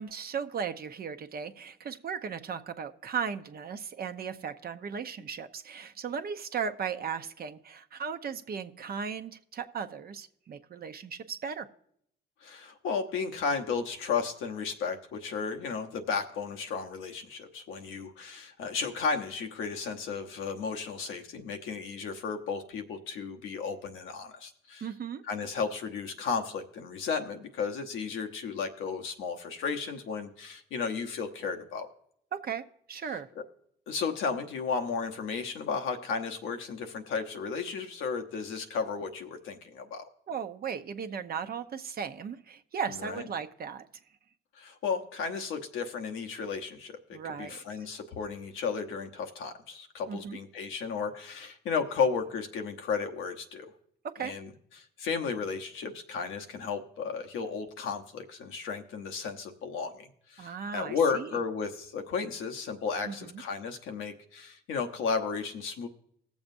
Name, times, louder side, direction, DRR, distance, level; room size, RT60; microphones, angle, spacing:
voice 1, 0.0-11.7 24.8-25.2 32.3-33.3 40.3-43.9 47.1-47.6 50.1-50.4 54.0-54.3 60.4-61.3 63.0-63.4, right 6 dB, 50° right, 8 dB, 0.8 m, -36 dB
voice 2, 12.4-24.8 25.3-31.9 33.9-40.1 43.0-43.2 44.6-53.7 54.2-54.5 54.8-65.9, left 5 dB, 85° left, 5 dB, 1.0 m, -34 dB
20.0 x 7.2 x 2.6 m, 0.70 s
cardioid pair, 90°, 20 cm